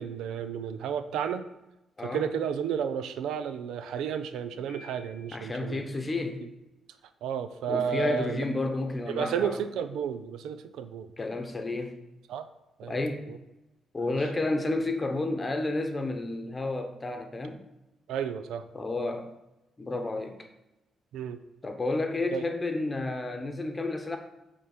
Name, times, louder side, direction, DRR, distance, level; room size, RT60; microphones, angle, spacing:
voice 1, 0.0-1.5 2.0-5.8 7.2-8.5 9.1-11.1 12.3-12.5 12.8-13.0 13.3-13.4 14.0-14.2 18.1-18.7 21.1-21.4 22.3-22.4, right 8 dB, 90° right, 10 dB, 0.4 m, -32 dB
voice 2, 2.0-2.3 5.3-6.4 7.7-9.6 11.2-11.9 12.9-13.3 13.9-17.6 18.7-19.3 19.8-20.4 21.6-24.2, left 2 dB, 25° left, 5 dB, 0.9 m, -31 dB
Piano, 4.7-5.7, left 4 dB, 90° left, 0.7 m, -53 dB
8.4 x 3.6 x 4.3 m, 0.95 s
cardioid pair, 105°, 0 cm